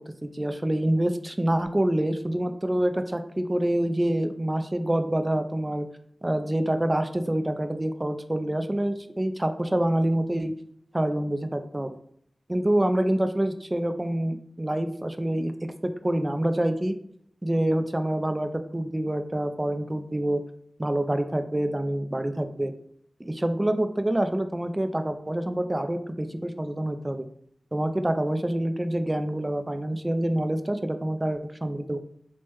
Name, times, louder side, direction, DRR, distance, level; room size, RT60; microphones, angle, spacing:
voice 1, 0.2-5.9 6.2-10.5 10.9-12.0 12.5-15.5 15.8-17.0 17.4-20.4 20.8-22.7 23.2-27.3 27.7-32.0, right 1 dB, 25° right, 8 dB, 0.3 m, -26 dB
3.1 x 2.0 x 3.1 m, 0.66 s
cardioid pair, 45°, 0 cm